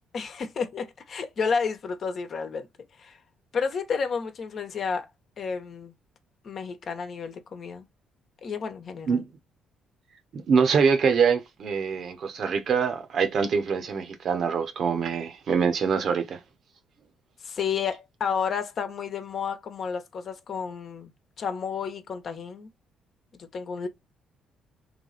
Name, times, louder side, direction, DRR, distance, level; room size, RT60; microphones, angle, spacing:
voice 1, 0.1-2.7 3.0-3.2 3.5-5.1 5.4-5.9 6.4-7.9 8.4-9.2 17.4-21.1 21.4-22.7 23.4-23.9, left 6 dB, 55° left, 1.0 m, -31 dB
voice 2, 10.3-16.4, right 6 dB, 55° right, 1.0 m, -24 dB
3.3 x 3.2 x 4.0 m
hypercardioid pair, 50°, 0 cm